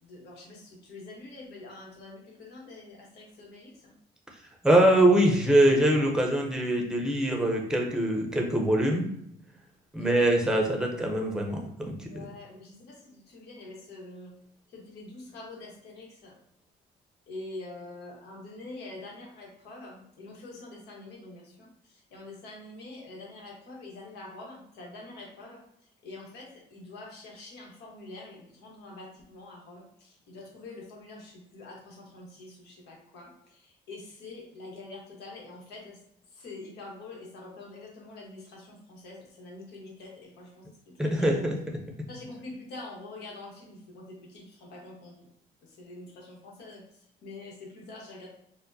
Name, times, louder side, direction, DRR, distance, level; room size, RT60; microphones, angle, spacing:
voice 1, 0.0-3.9 9.9-10.3 12.1-14.3 14.7-16.4 17.3-25.6 26.0-36.0 36.3-41.5 42.1-45.3 45.6-46.8 47.2-48.3, left 2 dB, 80° left, -1 dB, 1.1 m, -45 dB
voice 2, 4.6-9.1 9.9-12.2 41.0-41.5, right 1 dB, 5° right, 1 dB, 0.7 m, -23 dB
4.2 x 2.1 x 2.6 m, 0.77 s
cardioid pair, 110°, 17 cm